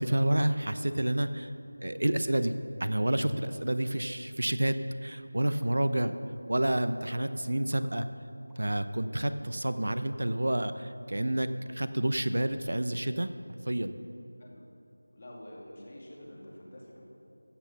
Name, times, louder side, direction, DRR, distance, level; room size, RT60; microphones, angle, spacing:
voice 1, 0.0-1.5 1.8-2.5 2.8-4.8 5.0-6.1 6.5-8.1 8.6-13.3 13.7-14.0, right 1 dB, 65° right, 11 dB, 0.7 m, -29 dB
sound 1, 5.6-6.3 6.7-7.0 7.7-8.7 9.2-10.3, equal, ahead, 1.0 m, -58 dB
voice 2, 15.1-17.0, left 1 dB, 30° left, -2 dB, 2.2 m, -47 dB
15.0 x 8.9 x 5.6 m, 2.8 s
figure-of-eight pair, 175°, 0 cm